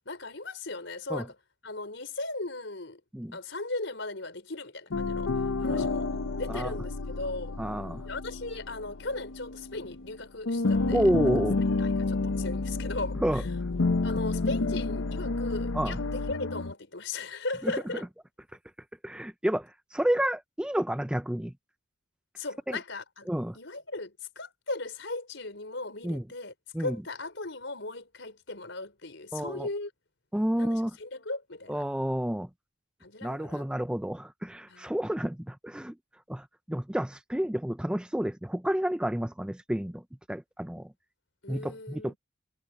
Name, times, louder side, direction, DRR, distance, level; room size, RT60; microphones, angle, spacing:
voice 1, 0.0-1.3 1.6-3.0 3.3-5.3 5.6-6.1 6.4-7.5 8.0-11.3 11.8-13.5 14.0-18.1 22.4-23.3 23.5-26.5 26.8-29.9 30.6-31.8 33.0-33.6 34.7-34.9 41.4-42.2, left 2 dB, 65° left, 4.5 m, -37 dB
sound 1, 4.9-10.1 10.4-16.7, left 3 dB, 90° left, 0.8 m, -30 dB
voice 2, 7.6-8.1 10.9-11.6 13.2-13.4 15.7-16.0 17.6-17.7 19.0-21.5 22.7-22.8 23.3-23.6 26.0-26.2 26.7-27.0 29.3-29.7 30.3-30.9 31.7-32.5 33.2-35.9 36.3-40.0 40.3-40.9 41.5-42.1, equal, 5° right, 0.4 m, -30 dB
head